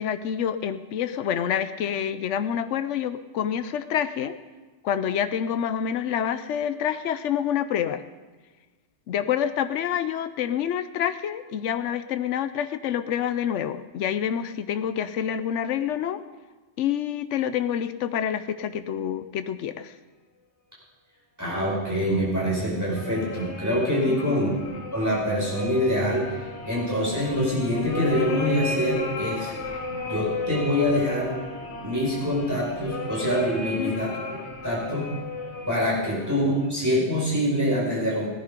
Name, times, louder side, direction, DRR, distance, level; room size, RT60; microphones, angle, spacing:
voice 1, 0.0-4.3 4.8-8.0 9.1-16.2 16.8-19.9 24.1-24.4 33.6-34.0, left 9 dB, 85° left, 11 dB, 1.0 m, -27 dB
voice 2, 21.4-24.6 24.9-29.5 30.1-31.4 31.8-34.1 34.6-35.1 35.7-38.3, equal, 15° right, -6 dB, 5.4 m, -25 dB
sound 1, 22.3-36.7, left 3 dB, 70° left, 1.8 m, -35 dB
18.0 x 10.5 x 5.1 m, 1.3 s
omnidirectional pair, 1.2 m